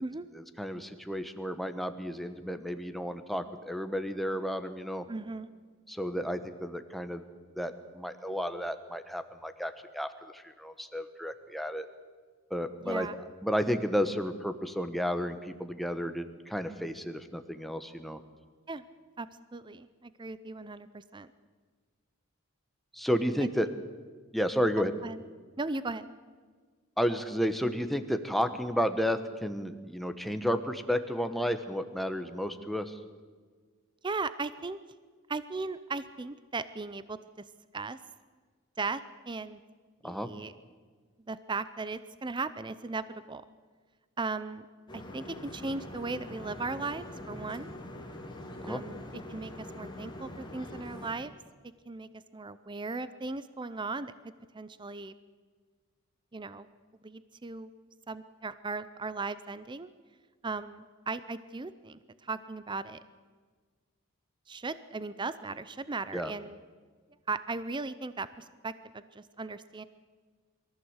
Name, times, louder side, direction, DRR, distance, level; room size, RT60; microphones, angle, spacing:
voice 1, 0.3-5.0 5.9-7.2 7.5-11.9 12.5-13.1 13.4-18.2 22.9-23.7 24.3-24.9 27.0-33.0 40.0-40.3 48.6-48.8 66.1-66.3, equal, ahead, 8 dB, 1.1 m, -32 dB
voice 2, 5.1-5.5 12.8-13.2 18.7-18.8 19.2-21.3 25.0-25.2 25.6-26.1 34.0-34.8 35.3-37.4 37.7-38.0 38.8-39.6 40.0-40.5 41.3-43.4 44.2-44.7 44.9-47.7 48.7-49.0 49.3-51.3 51.9-54.1 54.5-55.1 56.3-56.7 57.0-57.7 58.1-59.9 60.4-63.0 64.5-66.6 67.3-69.8, right 3 dB, 20° right, 14 dB, 0.6 m, -37 dB
sound 1, 44.9-51.1, left 1 dB, 20° left, 2.5 m, -43 dB
22.5 x 14.5 x 8.1 m, 1.5 s
head